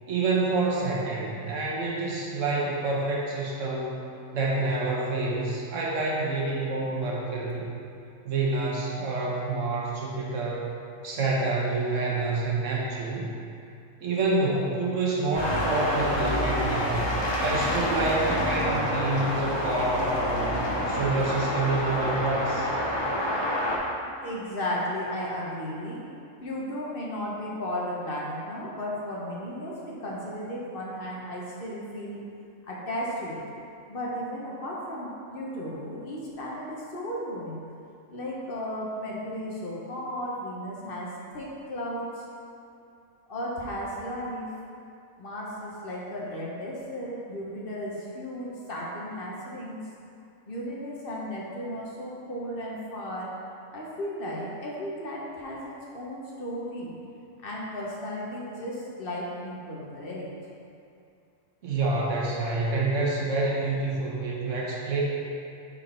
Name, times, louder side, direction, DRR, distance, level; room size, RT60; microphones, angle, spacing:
voice 1, 0.1-4.0 4.3-7.7 8.2-10.7 11.0-13.3 14.0-17.1 17.4-20.6 20.9-22.7 61.6-65.0, right 3 dB, 75° right, -4 dB, 1.3 m, -27 dB
sound 1, 15.3-23.8, left 1 dB, 30° left, 0.5 m, -27 dB
voice 2, 24.1-26.1 26.4-32.2 32.7-33.4 33.9-37.6 38.1-42.2 43.3-44.5 45.2-49.9 50.5-53.3 53.7-56.9 57.4-60.3, equal, 50° left, -4 dB, 0.9 m, -35 dB
5.6 x 4.1 x 4.2 m, 2.5 s
omnidirectional pair, 1.3 m